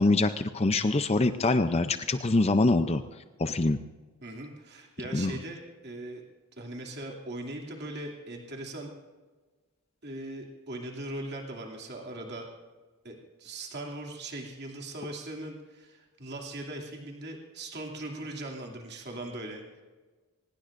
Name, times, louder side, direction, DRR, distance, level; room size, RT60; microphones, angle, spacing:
voice 1, 0.0-3.0 3.4-3.8 5.1-5.3, left 2 dB, 25° left, 9 dB, 0.5 m, -24 dB
voice 2, 4.2-6.2 6.6-8.9 10.0-12.5 13.0-19.8, right 1 dB, 50° right, 0 dB, 2.7 m, -40 dB
23.0 x 20.0 x 2.6 m, 1.3 s
head